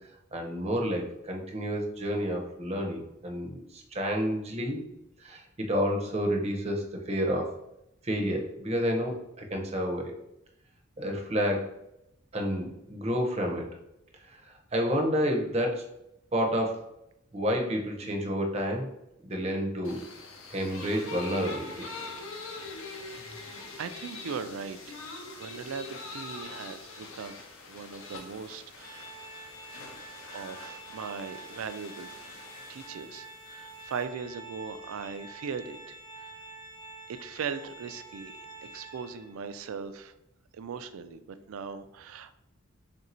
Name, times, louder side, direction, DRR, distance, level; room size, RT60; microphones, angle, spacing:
voice 1, 0.3-4.8 5.2-7.5 8.0-10.1 11.0-11.7 12.3-13.7 14.2-15.9 16.3-16.8 17.3-18.9 19.2-20.0 20.5-21.9, equal, 30° right, 2 dB, 0.6 m, -30 dB
sound 1, 19.8-34.0, left 3 dB, 70° left, 0.7 m, -44 dB
voice 2, 23.8-25.1 25.3-27.4 27.7-29.1 30.3-32.1 32.7-36.3 37.1-40.2 40.5-42.4, right 6 dB, 75° right, 11 dB, 0.3 m, -39 dB
Organ, 28.8-39.5, right 2 dB, 10° left, 0.7 m, -47 dB
3.6 x 2.6 x 4.2 m, 0.85 s
head